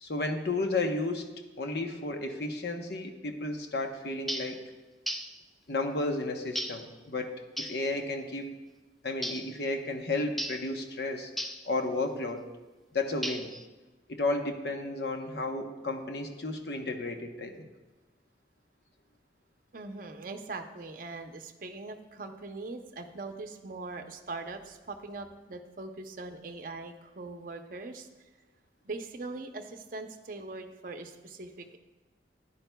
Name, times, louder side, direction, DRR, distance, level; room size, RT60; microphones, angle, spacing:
voice 1, 0.0-1.3 1.6-4.6 5.7-7.3 7.6-8.5 9.0-11.3 11.6-12.5 12.9-13.5 14.1-17.7, left 2 dB, 65° left, 4 dB, 0.9 m, -32 dB
sound 1, 4.3-4.6 5.1-5.4 6.6-6.9 7.6-7.8 9.2-9.5 10.4-10.7 11.4-11.7 13.2-13.6, equal, ahead, 0.3 m, -35 dB
voice 2, 19.7-28.1 28.8-31.8, right 3 dB, 50° right, 5 dB, 0.7 m, -41 dB
13.5 x 10.0 x 2.2 m, 1.2 s
head